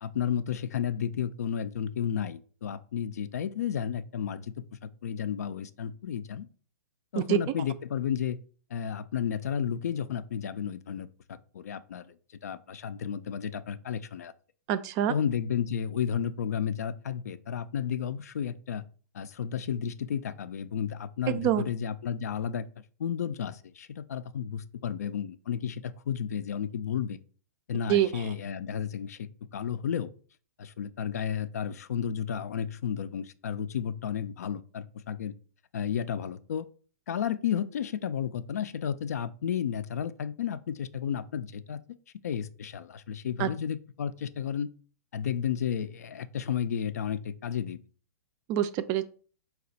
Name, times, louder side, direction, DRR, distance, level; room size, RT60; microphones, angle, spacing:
voice 1, 0.0-6.5 7.1-8.4 8.7-12.2 12.4-14.3 15.1-18.8 19.1-22.7 23.0-27.2 27.7-30.1 30.6-35.3 35.7-36.7 37.1-41.8 42.2-44.7 45.1-47.8, left 8 dB, 70° left, 0.4 m, -32 dB
voice 2, 14.7-15.1 21.3-21.6 27.9-28.3 43.4-43.5 48.5-49.0, right 11 dB, 35° right, 0.4 m, -26 dB
4.3 x 2.4 x 3.9 m
hypercardioid pair, 115°, 9 cm